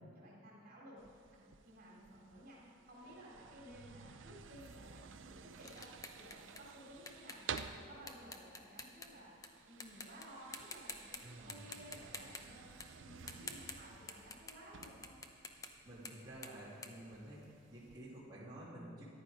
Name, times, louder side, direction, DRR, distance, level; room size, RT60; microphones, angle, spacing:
voice 1, 0.0-7.4 7.7-9.4 9.6-12.7 13.0-15.1, equal, 50° right, -4 dB, 3.7 m, -56 dB
sound 1, 1.0-18.0, right 6 dB, 75° right, 0.6 m, -53 dB
sound 2, 4.6-9.5 9.8-10.3 10.5-11.2 11.5-17.8, left 3 dB, 20° left, 0.8 m, -50 dB
voice 2, 11.2-11.6 15.8-19.0, right 1 dB, 20° right, -10 dB, 3.1 m, -51 dB
14.0 x 11.0 x 5.2 m, 2.4 s
head